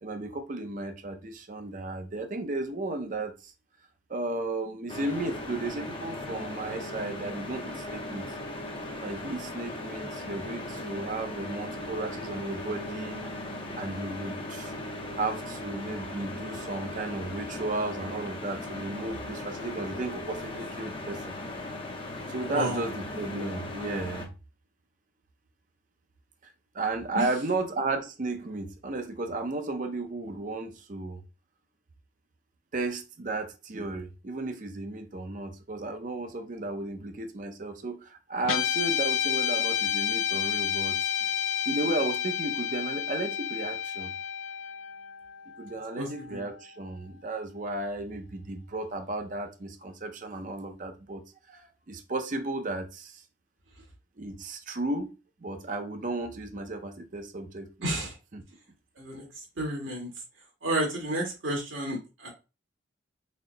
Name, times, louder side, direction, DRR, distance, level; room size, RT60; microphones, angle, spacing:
voice 1, 0.0-3.5 4.1-8.3 9.0-13.3 13.7-14.7 15.2-21.4 22.3-24.3 26.7-31.2 32.7-41.3 41.7-44.1 45.6-51.2 51.5-53.2 54.2-55.1 55.4-57.9 58.3-58.4, right 2 dB, 40° right, 0.5 m, -34 dB
sound 1, 4.9-24.3, left 1 dB, 25° left, 0.6 m, -38 dB
voice 2, 22.5-22.8 27.1-27.2 46.0-46.4 57.8-58.1 59.0-59.3 59.6-60.1 60.6-62.3, right 1 dB, 80° right, 1.7 m, -31 dB
Guitar, 38.4-46.9, left 9 dB, 80° left, 0.4 m, -30 dB
4.1 x 2.0 x 3.9 m
head